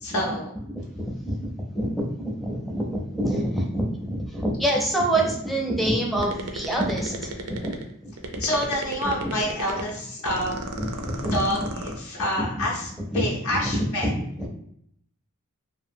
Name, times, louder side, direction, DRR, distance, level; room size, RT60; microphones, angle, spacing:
voice 1, 0.0-0.5 8.4-10.5 11.3-14.1, left 1 dB, 70° left, -3 dB, 0.5 m, -27 dB
voice 2, 0.7-8.4 9.2-9.3 10.8-11.7 12.4-12.6 13.1-14.5, right 1 dB, ahead, -2 dB, 0.5 m, -27 dB
sound 1, 6.2-7.9 8.2-9.9 10.2-12.0, right 3 dB, 80° right, 0.5 m, -33 dB
2.8 x 2.4 x 2.6 m, 0.70 s
head